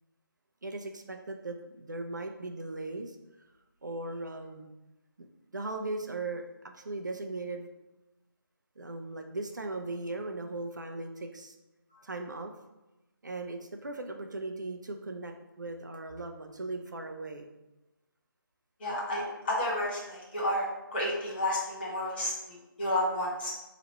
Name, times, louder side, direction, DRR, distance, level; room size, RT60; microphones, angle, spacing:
voice 1, 0.6-3.5 3.8-4.7 5.5-7.7 8.8-11.6 12.0-12.5 13.2-17.5, right 2 dB, 50° right, 4 dB, 0.5 m, -38 dB
voice 2, 18.8-20.7 20.9-23.5, left 1 dB, 25° left, -6 dB, 1.3 m, -31 dB
4.2 x 3.0 x 4.2 m, 0.99 s
figure-of-eight pair, 155°, 12 cm